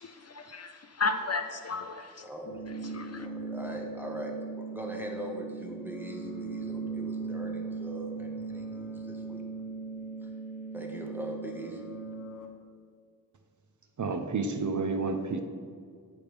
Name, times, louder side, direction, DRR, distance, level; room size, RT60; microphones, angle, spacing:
voice 1, 0.2-2.2 2.7-3.3, left 4 dB, 45° left, 7 dB, 0.4 m, -34 dB
voice 2, 2.2-2.7 3.1-4.3 4.7-9.4 10.2-10.3 10.7-11.8, right 1 dB, 5° right, 0 dB, 1.1 m, -41 dB
sound 1, 2.5-12.5, right 4 dB, 60° left, 0.8 m, -39 dB
voice 3, 14.0-15.4, right 4 dB, 55° right, 6 dB, 0.6 m, -30 dB
7.7 x 3.3 x 5.0 m, 2.1 s
wide cardioid pair, 65°, 36 cm